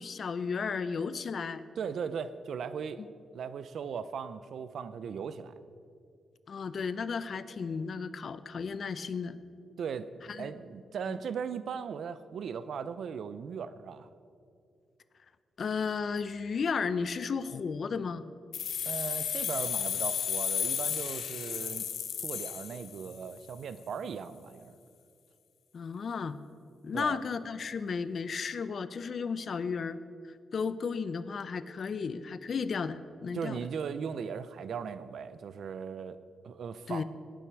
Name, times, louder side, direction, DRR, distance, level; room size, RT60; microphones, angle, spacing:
voice 1, 0.0-1.6 3.0-3.1 6.5-9.4 10.3-10.5 15.6-18.2 25.7-26.4 26.8-30.0 30.5-33.6 36.9-37.0, left 5 dB, 50° left, 14 dB, 0.6 m, -34 dB
voice 2, 1.8-3.0 3.3-5.5 9.8-10.1 10.4-14.1 18.9-21.9 22.2-24.7 26.9-27.2 33.3-36.2 36.4-37.0, right 6 dB, 70° right, 13 dB, 0.6 m, -38 dB
sound 1, 18.5-23.3, left 8 dB, 80° left, 1.2 m, -33 dB
18.5 x 9.1 x 4.7 m, 2.4 s
cardioid pair, 125°, 0 cm